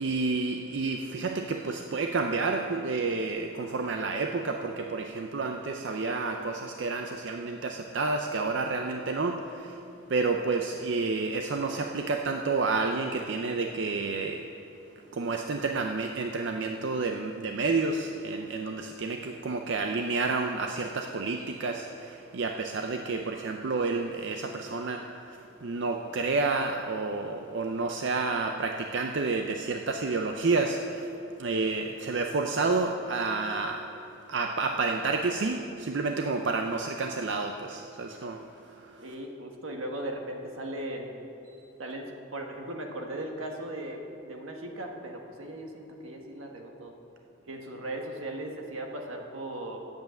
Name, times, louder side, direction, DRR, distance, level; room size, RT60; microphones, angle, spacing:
voice 1, 0.0-9.8 10.1-14.5 15.1-31.1 31.4-33.9 34.3-39.1, right 3 dB, 65° right, 4 dB, 0.5 m, -30 dB
voice 2, 39.0-41.1 41.8-46.9 47.5-49.8, right 1 dB, 90° right, 2 dB, 1.4 m, -38 dB
9.3 x 7.9 x 7.7 m, 2.7 s
head